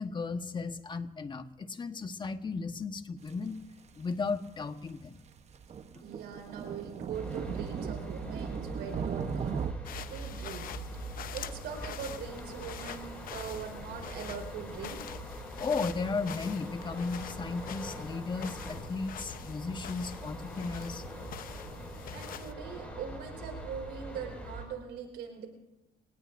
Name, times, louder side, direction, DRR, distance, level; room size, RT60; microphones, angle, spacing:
voice 1, 0.0-3.6 4.0-5.2 5.9-6.0 15.6-21.0, left 4 dB, 25° left, 8 dB, 1.2 m, -35 dB
sound 1, 3.3-3.4 3.9-4.0 4.5-4.6 5.3-9.7, right 7 dB, 40° right, 1.0 m, -37 dB
voice 2, 6.0-9.6 10.1-10.7 11.1-15.0 22.1-25.5, right 7 dB, 80° right, 3 dB, 4.5 m, -42 dB
sound 2, 7.1-24.6, right 1 dB, 5° left, 5.8 m, -42 dB
sound 3, 9.8-22.5, left 10 dB, 55° left, 0.9 m, -45 dB
28.0 x 18.5 x 2.6 m, 0.94 s
cardioid pair, 110°, 17 cm